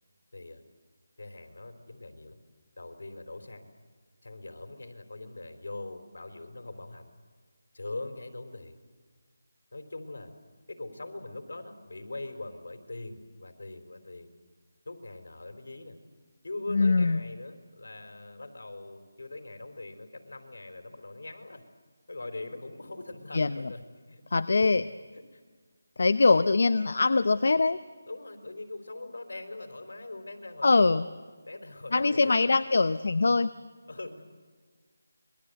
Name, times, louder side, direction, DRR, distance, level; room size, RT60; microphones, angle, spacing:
voice 1, 1.2-2.4 2.8-3.7 4.2-7.1 7.7-8.8 9.7-10.3 10.7-14.3 14.9-16.0 16.4-21.6 22.1-23.8 24.1-24.7 25.1-25.4 26.2-26.5 28.1-31.1 31.4-32.4 33.9-34.2, left 2 dB, 75° left, 7 dB, 4.0 m, -42 dB
voice 2, 16.7-17.2 23.3-23.7 24.3-24.8 26.0-27.8 30.6-31.0 31.9-33.5, left 3 dB, 55° left, 13 dB, 0.7 m, -23 dB
27.0 x 22.0 x 8.1 m, 1.5 s
figure-of-eight pair, 175°, 0 cm